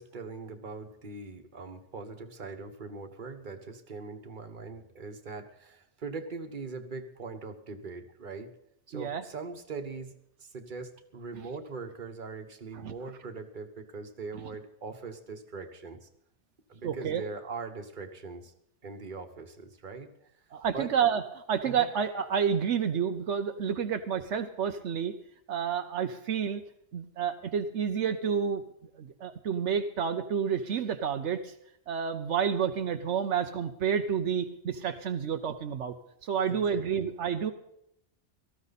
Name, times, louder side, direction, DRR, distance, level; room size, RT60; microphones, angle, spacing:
voice 1, 0.0-8.5 8.9-10.1 10.4-16.1 16.7-18.5 18.8-20.1 20.7-20.9 21.6-21.9 36.5-37.1, right 4 dB, 45° right, 6 dB, 1.4 m, -41 dB
voice 2, 8.9-9.2 12.7-12.9 16.8-17.2 20.5-21.2 21.5-25.1 25.5-26.6 26.9-28.6 29.0-31.5 31.9-35.9 36.2-37.5, right 7 dB, 80° right, 7 dB, 1.1 m, -29 dB
18.5 x 14.0 x 4.1 m, 0.76 s
omnidirectional pair, 1.2 m